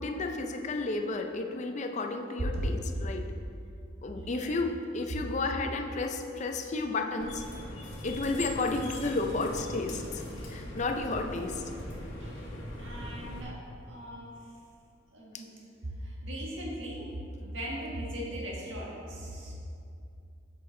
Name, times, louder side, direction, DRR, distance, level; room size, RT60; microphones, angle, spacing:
voice 1, 0.0-3.3 4.0-7.4 8.0-10.2 10.5-11.6 15.3-15.4, left 3 dB, 40° left, 4 dB, 0.5 m, -32 dB
voice 2, 4.1-4.5 12.2-12.5 12.8-13.5 13.8-14.3 15.1-15.5 16.0-17.1 17.4-19.5, equal, 80° right, -4 dB, 1.6 m, -39 dB
sound 1, 7.2-13.4, left 1 dB, 90° left, 1.3 m, -40 dB
7.9 x 6.1 x 3.8 m, 2.5 s
head